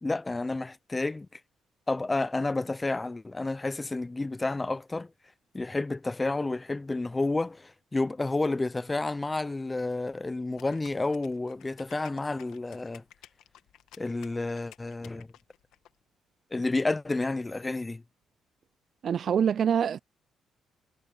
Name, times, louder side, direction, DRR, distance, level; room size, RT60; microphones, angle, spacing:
voice 1, 0.0-1.4 1.9-5.1 5.5-13.0 14.0-15.3 16.5-18.0, left 2 dB, 20° left, 0.5 m, -30 dB
sound 1, 10.6-15.9, left 12 dB, 85° left, 1.6 m, -54 dB
voice 2, 19.0-20.0, right 8 dB, 55° right, 0.3 m, -25 dB
cardioid pair, 90°, 0 cm